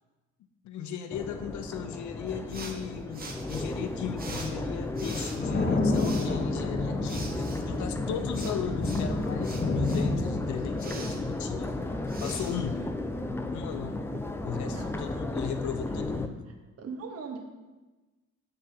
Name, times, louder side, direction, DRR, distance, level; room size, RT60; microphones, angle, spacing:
voice 1, 0.6-11.7 12.2-12.8 13.5-14.1 14.4-16.5, left 8 dB, 75° left, 8 dB, 0.6 m, -37 dB
Crowd, 1.1-16.3, left 2 dB, 10° left, 0.4 m, -34 dB
sound 1, 2.5-13.4, right 3 dB, 30° right, 0.9 m, -46 dB
sound 2, 5.4-12.9, left 3 dB, 30° left, 0.9 m, -31 dB
voice 2, 14.7-15.0 16.8-17.4, right 5 dB, 55° right, 2 dB, 1.1 m, -39 dB
9.8 x 3.8 x 2.7 m, 1.2 s
cardioid pair, 90°, 30 cm